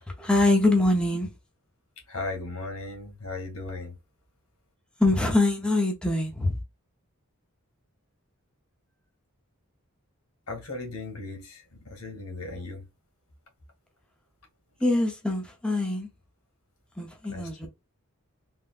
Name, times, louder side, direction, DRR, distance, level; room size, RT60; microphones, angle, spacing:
voice 1, 0.2-1.3 5.0-6.6 14.8-16.1 17.0-17.7, left 2 dB, 5° left, 0.6 m, -24 dB
voice 2, 2.1-4.0 10.5-12.8 17.3-17.7, left 2 dB, 90° left, 1.4 m, -37 dB
3.5 x 2.2 x 2.4 m
head